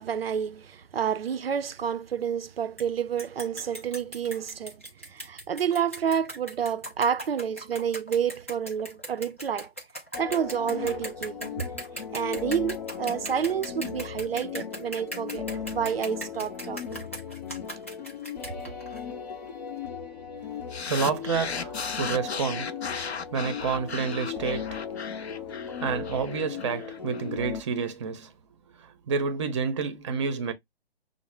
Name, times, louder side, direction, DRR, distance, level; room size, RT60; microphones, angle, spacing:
voice 1, 0.0-9.7 10.2-11.7 12.1-17.0, right 8 dB, 65° right, 0.5 m, -29 dB
sound 1, 2.8-2.9 3.2-19.0, right 1 dB, 15° left, 0.3 m, -39 dB
sound 2, 10.1-27.6, left 7 dB, 40° left, 0.6 m, -37 dB
sound 3, 20.7-27.2, left 6 dB, 90° left, 0.5 m, -36 dB
voice 2, 20.9-24.8 25.7-28.3 28.8-30.5, right 5 dB, 30° right, 0.6 m, -29 dB
6.1 x 2.0 x 3.3 m
figure-of-eight pair, 140°, 31 cm